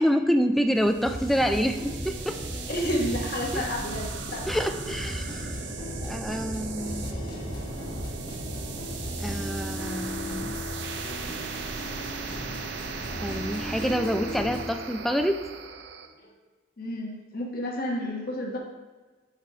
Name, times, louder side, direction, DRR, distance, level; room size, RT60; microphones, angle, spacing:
voice 1, 0.0-2.4 3.5-3.6 4.5-5.5 6.0-7.0 9.2-10.5 13.2-15.4, equal, ahead, 6 dB, 0.3 m, -27 dB
sound 1, 0.7-16.1, right 4 dB, 55° right, 0.6 m, -37 dB
sound 2, 1.0-14.7, left 1 dB, 25° left, 1.4 m, -37 dB
voice 2, 2.7-4.5 16.2-16.3 16.8-18.6, equal, 50° left, 0 dB, 1.1 m, -31 dB
12.0 x 4.8 x 2.9 m, 1.3 s
head